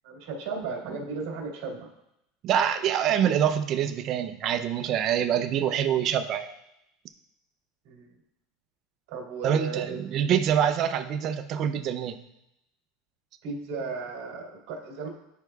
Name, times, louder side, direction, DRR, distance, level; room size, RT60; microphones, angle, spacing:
voice 1, 0.0-1.9 7.9-8.1 9.1-10.0 13.4-15.1, right 4 dB, 65° right, 0 dB, 1.9 m, -35 dB
voice 2, 2.4-6.5 9.4-12.2, right 9 dB, 40° right, 8 dB, 0.5 m, -25 dB
11.0 x 4.5 x 2.3 m, 0.83 s
supercardioid pair, 150°, 0 cm